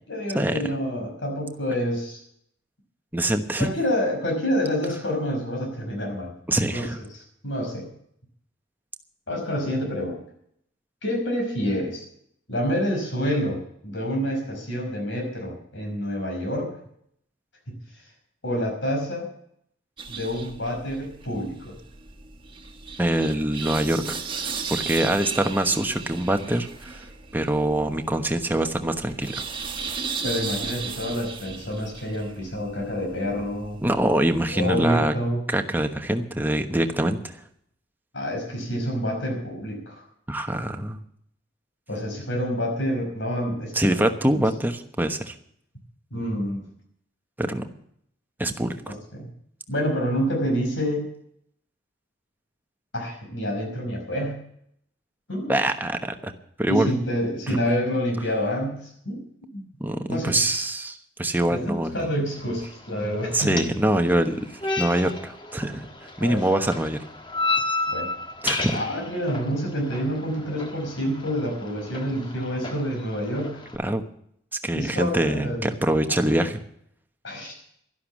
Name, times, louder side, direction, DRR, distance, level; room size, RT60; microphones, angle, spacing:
voice 1, 0.0-2.2 3.6-7.9 9.3-10.2 11.0-12.1 12.5-16.7 17.7-17.8 18.4-19.3 20.1-21.7 30.2-33.8 34.5-35.4 38.1-40.0 41.9-44.0 44.3-44.4 46.1-46.6 49.1-49.3 49.7-51.1 52.9-54.4 55.3-55.6 56.7-59.2 59.5-59.7 60.1-60.4 61.5-63.6 66.2-66.4 67.9-68.1 68.7-73.6 74.7-75.7 77.2-77.6, equal, 70° left, 1 dB, 5.3 m, -28 dB
voice 2, 3.1-3.7 6.5-7.0 23.0-27.1 27.3-29.4 33.8-35.1 35.5-37.4 40.3-41.0 43.7-45.3 47.4-47.7 48.4-48.9 55.5-56.3 56.6-56.9 59.8-62.0 63.3-65.9 66.2-67.0 68.4-68.8 73.8-74.0 74.6-76.6, right 1 dB, 10° right, 6 dB, 1.1 m, -24 dB
sound 1, 20.0-34.5, right 5 dB, 25° right, 1.6 m, -36 dB
sound 2, 62.3-73.8, left 3 dB, 25° left, 1.5 m, -33 dB
12.0 x 11.5 x 7.4 m, 0.69 s
head